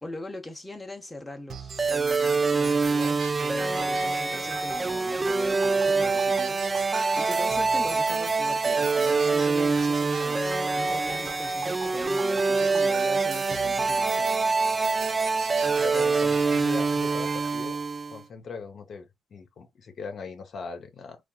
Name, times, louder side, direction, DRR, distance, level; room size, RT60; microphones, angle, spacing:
voice 1, 0.0-14.7, left 1 dB, 10° left, 0.9 m, -41 dB
sound 1, 1.5-17.5, right 6 dB, 55° right, 0.6 m, -41 dB
sound 2, 1.8-18.2, right 4 dB, 25° right, 0.3 m, -25 dB
voice 2, 15.8-17.8 18.1-21.2, left 5 dB, 55° left, 0.9 m, -39 dB
3.5 x 2.4 x 2.4 m
cardioid pair, 90°, 0 cm